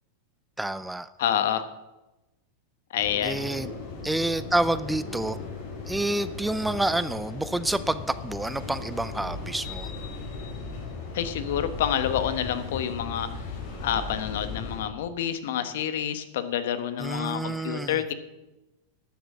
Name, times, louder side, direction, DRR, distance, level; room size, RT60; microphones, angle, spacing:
voice 1, 0.6-1.1 3.2-3.7 4.0-5.4 5.8-9.9 17.0-18.0, right 1 dB, 5° right, 15 dB, 0.4 m, -28 dB
voice 2, 1.2-1.6 2.9-3.4 11.1-13.3 13.8-18.1, left 10 dB, 75° left, 11 dB, 1.2 m, -28 dB
sound 1, 3.0-14.8, left 4 dB, 50° left, 5.3 m, -37 dB
12.5 x 7.5 x 7.3 m, 1.0 s
supercardioid pair, 140°, 0 cm